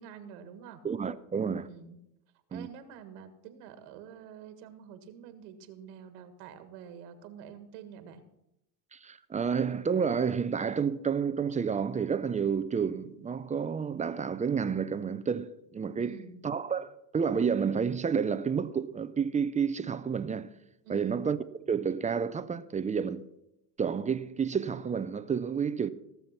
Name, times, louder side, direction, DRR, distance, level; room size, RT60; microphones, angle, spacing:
voice 1, 0.0-0.8 1.6-2.0 2.5-8.2 16.0-16.4 20.8-21.2, right 7 dB, 85° right, 1.8 m, -47 dB
voice 2, 0.8-1.7 2.5-2.7 8.9-16.2 16.4-20.5 20.9-21.4 21.7-23.3 23.8-25.9, right 6 dB, 15° right, 0.4 m, -30 dB
17.0 x 7.0 x 5.8 m
supercardioid pair, 115°, 46 cm